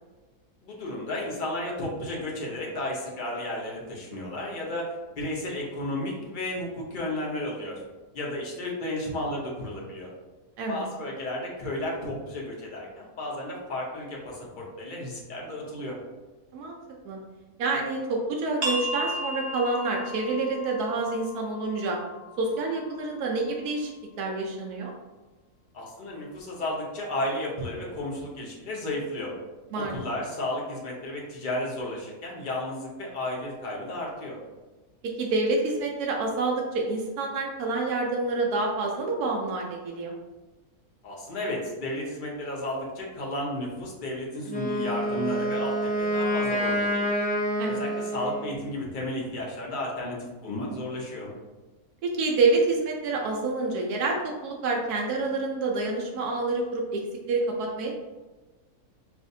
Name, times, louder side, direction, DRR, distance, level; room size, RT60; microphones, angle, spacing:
voice 1, 0.6-7.8 8.1-10.1 10.7-16.0 25.7-29.3 29.8-34.4 41.0-47.1 47.7-51.4, left 1 dB, 40° left, -3 dB, 0.9 m, -33 dB
voice 2, 17.6-22.0 22.4-24.9 29.7-30.0 35.0-40.1 47.6-47.8 52.0-54.2 54.4-57.0 57.3-57.9, right 3 dB, 85° right, 0 dB, 1.1 m, -27 dB
sound 1, 18.6-24.0, equal, 45° right, 0.7 m, -36 dB
Wind instrument woodwind instrument, 44.5-48.6, equal, 10° left, 0.4 m, -27 dB
5.9 x 2.5 x 2.6 m, 1.2 s
omnidirectional pair, 1.6 m